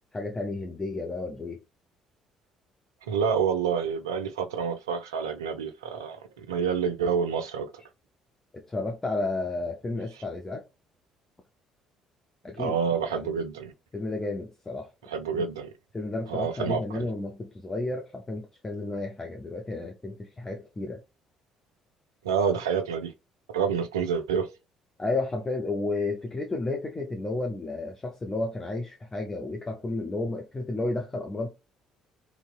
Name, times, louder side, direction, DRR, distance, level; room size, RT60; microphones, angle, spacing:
voice 1, 0.0-1.6 8.5-10.6 12.4-12.8 13.1-13.3 13.9-14.9 15.3-15.4 15.9-21.0 25.0-31.5, left 2 dB, 20° left, 0.6 m, -32 dB
voice 2, 3.1-7.7 12.6-13.7 15.1-15.7 16.3-17.1 22.2-23.1 23.5-24.5, right 6 dB, 80° right, 0.4 m, -28 dB
2.7 x 2.2 x 2.3 m
figure-of-eight pair, 50°, 2 cm